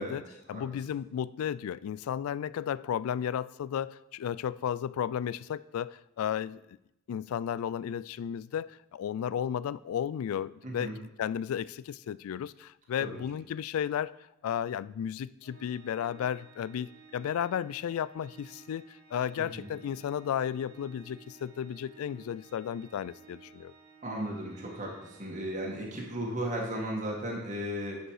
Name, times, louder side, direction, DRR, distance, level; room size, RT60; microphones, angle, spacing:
voice 1, 0.0-6.8 7.1-14.1 14.4-23.7, left 9 dB, 80° left, 0.3 m, -34 dB
voice 2, 10.6-11.0 13.0-13.2 19.4-19.7 24.0-24.9 25.2-28.0, equal, 35° right, 1.8 m, -35 dB
Organ, 15.4-26.2, right 5 dB, 90° right, 2.3 m, -56 dB
9.9 x 5.2 x 4.8 m
head